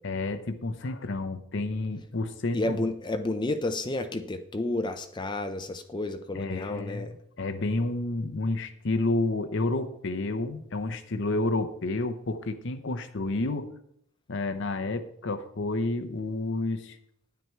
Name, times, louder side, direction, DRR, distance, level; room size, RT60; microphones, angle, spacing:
voice 1, 0.0-2.9 6.3-13.7 14.3-17.0, left 2 dB, 55° left, 7 dB, 0.7 m, -30 dB
voice 2, 2.5-7.1, left 2 dB, 20° left, 8 dB, 0.5 m, -31 dB
9.5 x 9.4 x 4.5 m, 0.71 s
head